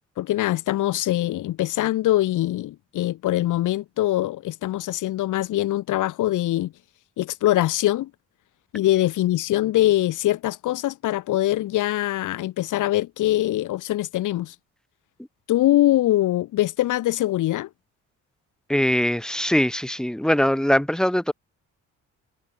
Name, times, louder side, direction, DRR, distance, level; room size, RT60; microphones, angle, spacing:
voice 1, 0.2-6.7 7.2-8.1 8.7-14.5 15.5-17.7, left 15 dB, 85° left, 4.1 m, -23 dB
voice 2, 18.7-21.3, equal, ahead, 1.0 m, -21 dB
cardioid pair, 90°, 30 cm